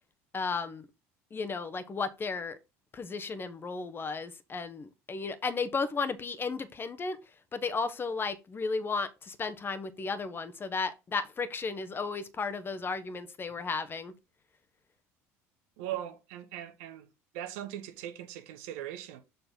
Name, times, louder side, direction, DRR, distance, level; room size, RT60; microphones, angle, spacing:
voice 1, 0.3-0.8 1.3-2.6 2.9-7.2 7.5-14.1, left 4 dB, 30° left, 1.0 m, -34 dB
voice 2, 15.8-17.1 17.3-19.2, right 12 dB, 75° right, 1.0 m, -39 dB
7.0 x 4.0 x 3.9 m
hypercardioid pair, 80°, 7 cm